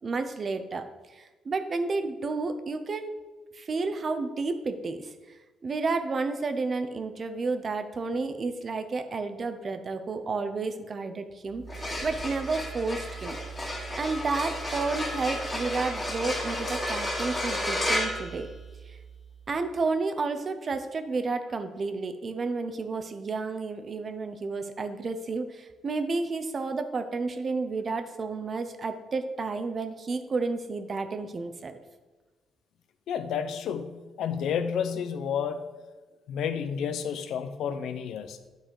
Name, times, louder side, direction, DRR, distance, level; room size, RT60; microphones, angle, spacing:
voice 1, 0.0-0.9 1.1-3.1 3.5-11.6 12.0-13.4 14.0-18.5 18.9-19.0 19.5-31.8, right 3 dB, 40° right, 8 dB, 0.7 m, -31 dB
sound 1, 11.6-19.0, left 1 dB, 20° left, 2.3 m, -32 dB
voice 2, 33.1-35.6 36.3-38.5, left 7 dB, 75° left, 10 dB, 0.6 m, -31 dB
10.0 x 4.1 x 4.8 m, 1.2 s
cardioid pair, 90°, 0 cm